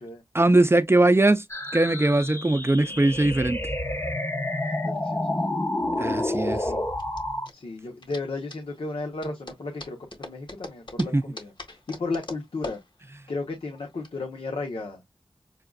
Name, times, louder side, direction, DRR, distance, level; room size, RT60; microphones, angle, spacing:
voice 1, 0.3-1.4 1.7-3.6 6.0-6.7 11.1-11.2, right 2 dB, 25° right, 0.6 m, -20 dB
sound 1, 1.5-7.5, left 1 dB, 30° left, 1.1 m, -29 dB
voice 2, 4.6-5.4 6.0-6.8 7.5-12.8 13.3-15.0, left 3 dB, 85° left, 1.0 m, -34 dB
sound 2, 5.2-14.1, left 2 dB, 60° left, 1.7 m, -44 dB
6.6 x 2.4 x 2.3 m
wide cardioid pair, 45°, 9 cm